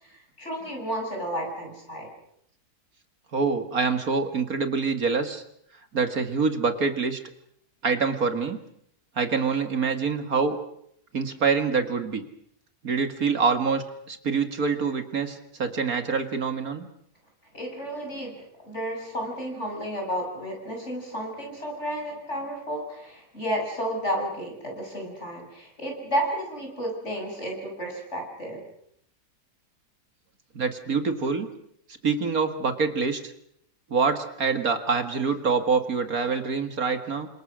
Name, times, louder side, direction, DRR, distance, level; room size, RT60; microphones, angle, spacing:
voice 1, 0.4-2.1 17.5-28.6, equal, 45° left, 1 dB, 7.8 m, -32 dB
voice 2, 3.3-5.4 5.9-7.2 7.8-8.6 9.2-10.6 11.1-12.3 12.8-16.9 30.5-31.5 32.0-33.3 33.9-37.3, right 5 dB, 60° right, 7 dB, 2.4 m, -25 dB
29.5 x 26.0 x 6.4 m, 0.72 s
omnidirectional pair, 1.7 m